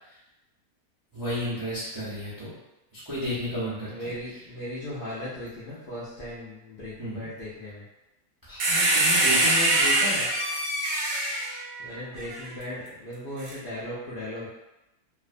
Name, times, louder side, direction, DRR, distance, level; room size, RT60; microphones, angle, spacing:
voice 1, 1.1-2.5 2.9-4.1 7.0-7.3 8.4-10.3, equal, 30° right, -11 dB, 0.4 m, -32 dB
voice 2, 3.9-7.9 11.8-14.5, left 1 dB, 80° left, -8 dB, 0.4 m, -37 dB
sound 1, 8.6-12.4 13.4-13.5, right 1 dB, 70° right, 0.9 m, -24 dB
2.4 x 2.1 x 2.5 m, 0.96 s
omnidirectional pair, 1.6 m